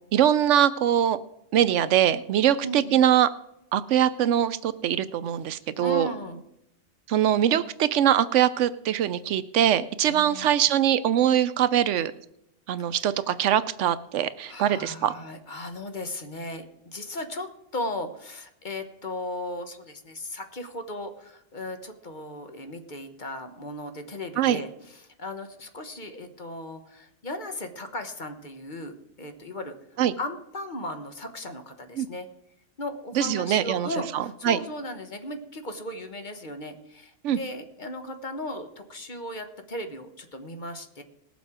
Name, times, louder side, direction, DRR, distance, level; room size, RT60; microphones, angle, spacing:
voice 1, 0.1-1.2 1.5-3.3 3.7-6.1 7.1-12.1 12.7-15.1 24.4-24.6 30.0-30.1 32.0-32.1 33.2-34.6 37.2-37.4, right 10 dB, 75° right, 15 dB, 0.9 m, -22 dB
voice 2, 2.6-3.1 5.8-6.4 10.0-10.6 14.4-32.3 32.8-41.0, left 1 dB, 40° left, 7 dB, 1.2 m, -36 dB
19.0 x 7.3 x 4.9 m, 0.82 s
omnidirectional pair, 1.3 m